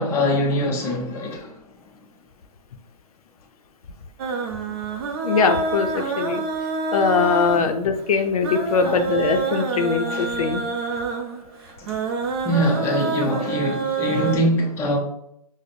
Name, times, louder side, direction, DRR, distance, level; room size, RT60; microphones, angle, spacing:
voice 1, 0.0-1.5 6.0-6.1 7.6-7.7 8.8-9.0 10.1-10.2 11.8-11.9 12.4-15.0, equal, 15° left, 0.4 m, -23 dB
sound 1, 4.2-14.4, right 4 dB, 40° right, 0.5 m, -27 dB
voice 2, 5.2-6.4 6.9-10.6, left 5 dB, 70° left, 0.5 m, -21 dB
4.8 x 2.0 x 2.6 m
hypercardioid pair, 140°, 20 cm